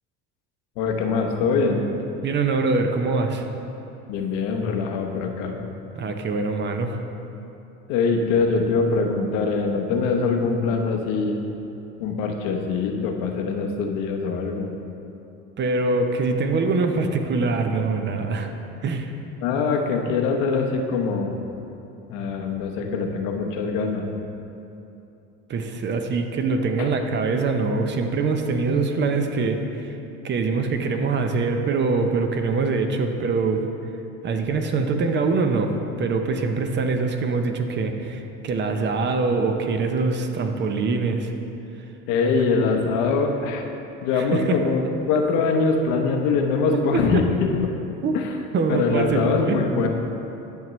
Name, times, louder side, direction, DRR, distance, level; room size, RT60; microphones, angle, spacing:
voice 1, 0.8-1.8 4.1-5.6 7.9-11.4 12.0-14.7 19.4-21.4 22.1-24.1 26.8-26.9 42.1-43.6 44.0-47.7 48.1-48.4 48.7-49.9, left 4 dB, 80° left, 3 dB, 0.9 m, -23 dB
voice 2, 2.2-3.5 6.0-7.0 15.6-18.5 18.8-19.1 25.5-30.0 30.2-33.6 34.2-41.3 44.2-44.6 46.9-47.2 48.0-48.2 48.5-49.6, right 4 dB, 35° right, 5 dB, 0.6 m, -24 dB
10.5 x 6.0 x 3.1 m, 2.8 s
cardioid pair, 115°, 31 cm